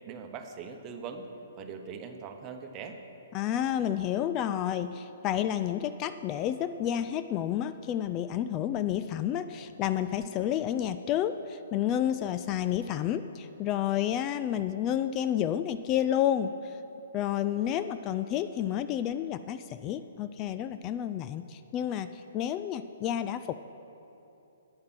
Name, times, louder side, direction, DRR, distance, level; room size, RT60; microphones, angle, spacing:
voice 1, 0.0-1.3 1.6-3.0, right 6 dB, 25° right, 5 dB, 1.0 m, -41 dB
voice 2, 3.3-16.8 17.1-23.5, left 10 dB, 30° left, 11 dB, 0.3 m, -30 dB
9.5 x 8.5 x 6.1 m, 3.0 s
figure-of-eight pair, 125°, 0 cm